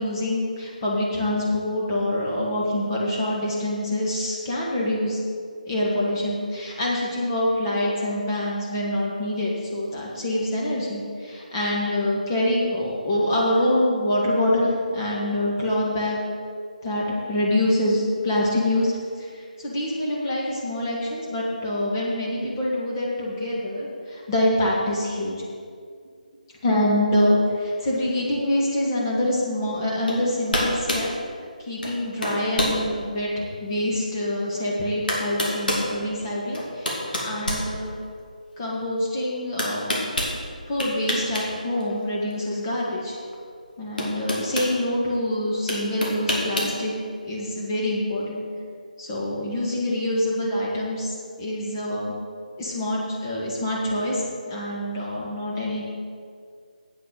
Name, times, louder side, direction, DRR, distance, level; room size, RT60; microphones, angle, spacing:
voice 1, 0.0-5.2 5.7-16.2 16.8-18.9 19.2-25.4 26.6-31.1 31.6-37.9 38.6-40.0 40.7-43.2 43.8-46.9 47.2-48.4 49.0-52.1 52.6-55.8, left 1 dB, 25° left, -4 dB, 1.9 m, -25 dB
sound 1, 30.1-30.2 30.5-31.1 31.8-32.0 32.2-32.8 33.4-33.5 34.6-34.7 35.1-35.9 36.5-38.2 39.6-40.3 40.8-41.5 41.8-41.9 43.3-43.4 44.0-44.7 45.7-46.8, left 1 dB, 75° left, 2.7 m, -26 dB
8.5 x 6.6 x 8.0 m, 2.1 s
figure-of-eight pair, 155°, 5 cm